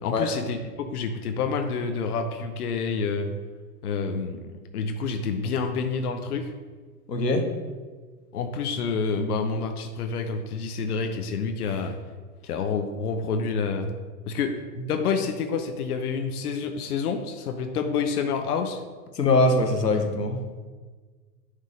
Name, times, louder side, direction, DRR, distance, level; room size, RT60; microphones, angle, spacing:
voice 1, 0.0-3.3 3.8-6.5 8.3-12.0 12.4-13.9 14.3-14.6 14.9-18.8, left 5 dB, 65° left, 5 dB, 0.8 m, -28 dB
voice 2, 7.1-7.5 19.1-20.4, left 2 dB, 90° left, 4 dB, 1.0 m, -22 dB
9.7 x 3.7 x 5.1 m, 1.4 s
figure-of-eight pair, 95°, 48 cm